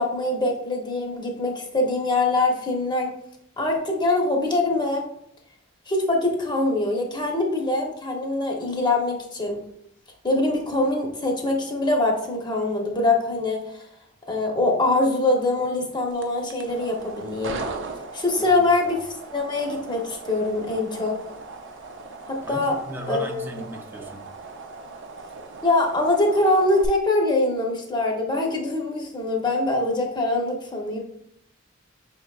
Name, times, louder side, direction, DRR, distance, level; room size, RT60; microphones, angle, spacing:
voice 1, 0.0-3.1 3.6-5.0 5.9-9.6 10.2-13.8 14.3-17.6 18.1-21.2 22.3-22.8 23.1-23.5 25.6-31.0, left 2 dB, 20° left, 1 dB, 0.8 m, -23 dB
sound 1, 16.1-26.9, right 3 dB, 65° right, 0.5 m, -38 dB
voice 2, 18.4-18.7 22.4-24.2, right 1 dB, 10° right, 2 dB, 0.5 m, -36 dB
5.8 x 3.6 x 2.3 m, 0.73 s
head